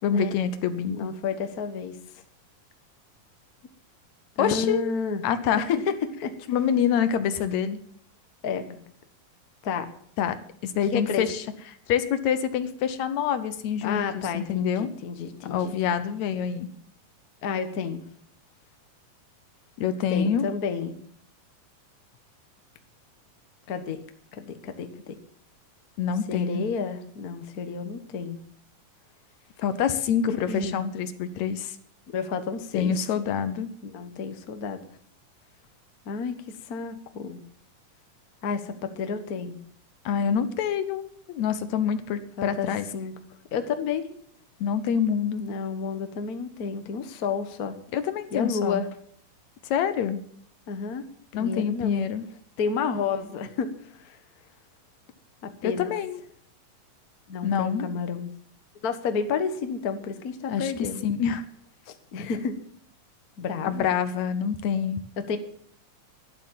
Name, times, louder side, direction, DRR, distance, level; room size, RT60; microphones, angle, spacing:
voice 1, 0.0-1.1 4.4-4.8 5.2-5.7 6.5-7.8 10.2-10.4 10.6-11.4 11.9-14.9 15.5-16.7 19.8-20.5 26.0-26.7 29.6-31.8 32.7-33.7 40.1-42.9 44.6-45.5 47.9-48.8 49.6-50.2 51.3-52.2 55.6-56.2 57.4-57.9 60.5-60.7 61.0-61.4 63.6-65.0, left 8 dB, 70° left, 12 dB, 1.9 m, -26 dB
voice 2, 0.9-2.0 4.4-5.2 5.6-5.9 6.2-6.3 8.4-8.8 9.6-9.9 10.8-11.3 13.8-15.7 17.4-18.0 20.1-21.0 23.7-24.0 24.3-25.2 26.3-28.4 30.3-30.8 32.1-32.9 33.8-34.8 36.0-36.4 36.6-37.4 38.4-39.6 42.4-43.1 43.5-44.1 45.4-47.7 48.3-48.9 50.7-51.0 51.4-52.1 52.6-54.2 55.4-55.9 57.3-58.3 58.8-61.0 61.9-62.5 63.4-63.9 65.2-65.4, left 5 dB, 90° left, 8 dB, 0.8 m, -30 dB
12.0 x 11.5 x 7.4 m, 0.62 s
omnidirectional pair, 3.9 m